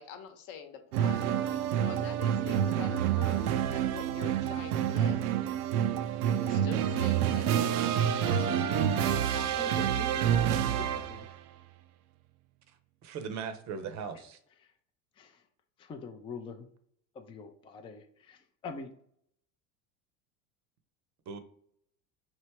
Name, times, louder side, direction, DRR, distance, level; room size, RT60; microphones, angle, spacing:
voice 1, 0.0-5.2 6.4-8.6 9.3-9.8, left 7 dB, 45° left, 7 dB, 0.9 m, -46 dB
sound 1, 0.9-11.3, right 9 dB, 75° right, 0.5 m, -28 dB
voice 2, 9.6-10.4 10.8-11.3 15.2-15.4 15.8-16.7 17.2-18.4 18.6-18.9, left 5 dB, 15° left, 6 dB, 0.3 m, -44 dB
voice 3, 13.0-14.4 21.3-21.4, right 6 dB, 40° right, 10 dB, 0.7 m, -38 dB
3.2 x 2.8 x 4.4 m, 0.65 s
hypercardioid pair, 85°, 45 cm